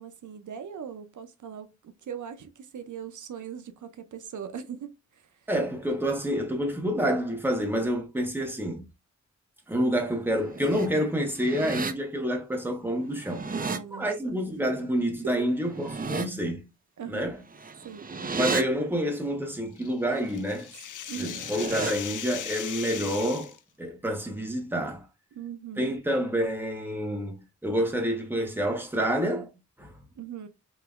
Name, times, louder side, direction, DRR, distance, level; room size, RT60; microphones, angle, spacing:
voice 1, 0.0-5.3 13.5-14.4 15.2-15.4 17.0-17.3 17.8-18.1 20.7-21.4 25.3-26.0 30.2-30.5, right 8 dB, 80° right, 0.6 m, -40 dB
voice 2, 5.5-8.8 9.7-13.5 13.9-16.6 17.1-17.4 18.4-20.7 21.2-25.1 25.8-29.5 29.8-29.9, equal, 5° right, 1.0 m, -28 dB
sound 1, 10.3-10.9 11.3-11.9 13.1-13.8 15.6-16.3 17.5-18.6 21.2-21.9, right 4 dB, 30° right, 0.5 m, -33 dB
sound 2, 19.8-23.6, left 9 dB, 85° left, 0.5 m, -38 dB
5.1 x 2.9 x 2.4 m
wide cardioid pair, 140°, 30 cm